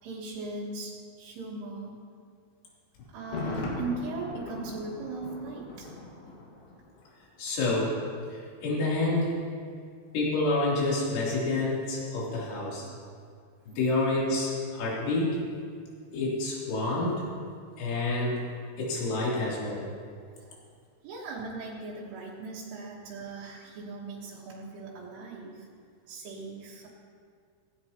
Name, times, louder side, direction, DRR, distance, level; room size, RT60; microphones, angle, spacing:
voice 1, 0.0-2.0 3.1-6.0 12.7-13.0 19.2-19.4 20.4-20.6 21.0-25.7 26.1-26.9, right 3 dB, 75° right, -5 dB, 3.8 m, -39 dB
Thunder, 3.2-7.1 7.4-7.5, left 2 dB, 85° left, 4.5 m, -38 dB
voice 2, 7.4-7.9 8.3-9.4 10.1-12.9 13.7-15.4 16.1-17.3 17.8-18.4 18.8-19.8, left 2 dB, 70° left, -6 dB, 5.5 m, -28 dB
17.0 x 17.0 x 2.9 m, 2.2 s
omnidirectional pair, 5.7 m